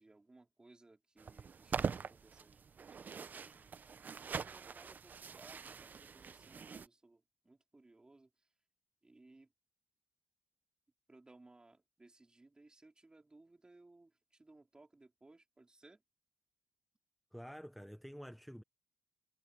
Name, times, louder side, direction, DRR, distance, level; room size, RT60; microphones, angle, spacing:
voice 1, 0.0-3.7 4.2-8.5 9.0-9.5 11.1-16.0, right 2 dB, 15° right, 4.5 m, -63 dB
sound 1, 1.2-6.9, right 6 dB, 35° right, 0.7 m, -43 dB
voice 2, 17.3-18.6, equal, ahead, 0.9 m, -49 dB
cardioid pair, 100°, 5 cm